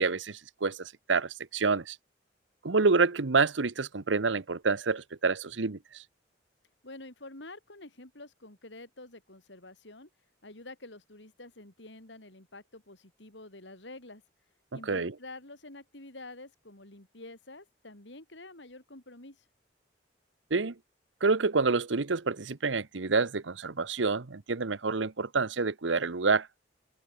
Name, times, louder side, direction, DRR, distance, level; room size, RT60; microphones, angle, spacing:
voice 1, 0.0-2.0 2.6-6.0 14.9-15.1 20.5-20.7 21.2-26.5, right 4 dB, 85° right, 1.0 m, -28 dB
voice 2, 6.8-10.1 10.4-14.2 14.7-19.4, left 2 dB, 75° left, 4.6 m, -48 dB
head